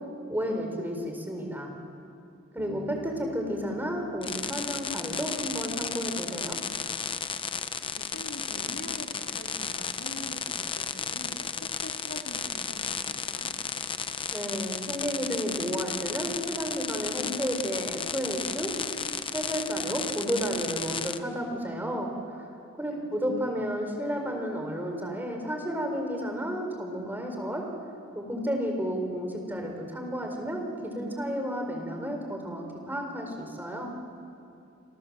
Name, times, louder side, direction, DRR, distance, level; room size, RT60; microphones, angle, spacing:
voice 1, 0.3-1.7 2.5-6.6 14.3-18.7 19.3-22.1 22.4-22.5 22.8-27.7 28.1-33.9, equal, 10° right, 2 dB, 4.8 m, -32 dB
Bass guitar, 2.6-6.1, right 4 dB, 80° right, 2.3 m, -47 dB
sound 1, 4.2-21.2, left 6 dB, 25° left, 0.9 m, -34 dB
voice 2, 7.9-13.5 22.9-23.5, left 1 dB, 60° left, 1 dB, 4.1 m, -44 dB
29.0 x 27.0 x 7.7 m, 2.6 s
head